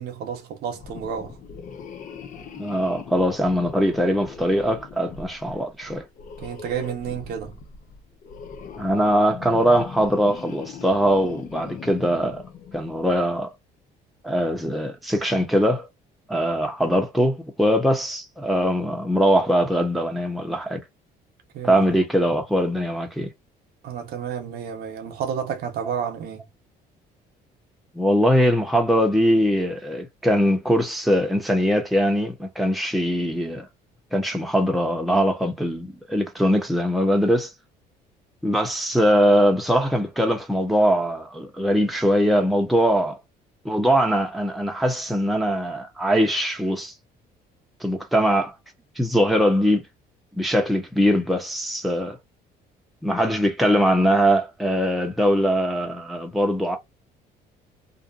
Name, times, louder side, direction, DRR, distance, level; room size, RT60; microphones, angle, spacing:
voice 1, 0.0-1.4 6.4-7.5 21.5-21.8 23.8-26.5, right 8 dB, 70° right, 0.9 m, -31 dB
sound 1, 0.7-13.2, left 6 dB, 50° left, 0.6 m, -40 dB
voice 2, 2.6-6.0 8.8-12.4 12.7-13.5 14.2-15.9 16.3-20.8 21.6-23.3 27.9-33.7 34.1-37.5 38.4-43.2 43.6-46.9 47.8-48.5 49.0-49.9 50.3-52.2 53.0-56.8, equal, ahead, 0.8 m, -21 dB
2.6 x 2.4 x 2.5 m
cardioid pair, 110°, 17 cm